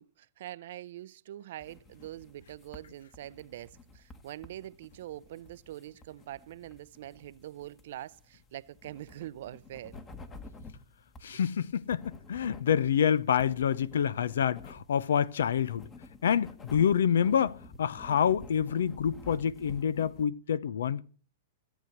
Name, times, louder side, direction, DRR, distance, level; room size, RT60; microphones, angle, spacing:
voice 1, 0.0-10.0 11.3-11.4, right 13 dB, 65° right, 0.5 m, -44 dB
sound 1, 1.6-20.3, left 3 dB, 20° left, 1.4 m, -51 dB
voice 2, 11.2-15.9 16.2-21.0, left 8 dB, 85° left, 0.6 m, -27 dB
14.5 x 8.1 x 5.9 m
hypercardioid pair, 130°, 0 cm